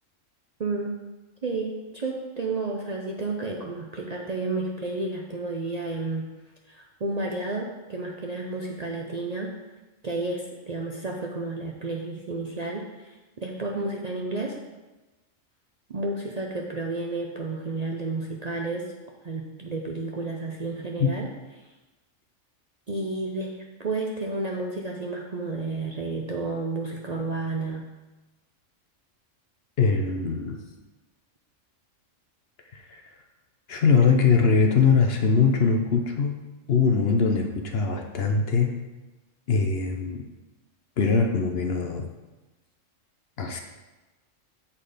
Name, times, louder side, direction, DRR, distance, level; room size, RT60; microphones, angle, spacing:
voice 1, 0.6-1.0 1.4-6.3 6.7-9.5 10.0-14.6 15.9-18.9 19.2-21.3 22.9-27.9, right 3 dB, 45° right, 0 dB, 0.6 m, -31 dB
voice 2, 29.8-30.6 32.7-33.0 33.7-36.4 36.7-38.7 39.5-40.2 41.0-42.1 43.4-43.6, left 5 dB, 55° left, 3 dB, 0.9 m, -22 dB
7.4 x 4.3 x 5.0 m, 1.1 s
omnidirectional pair, 1.3 m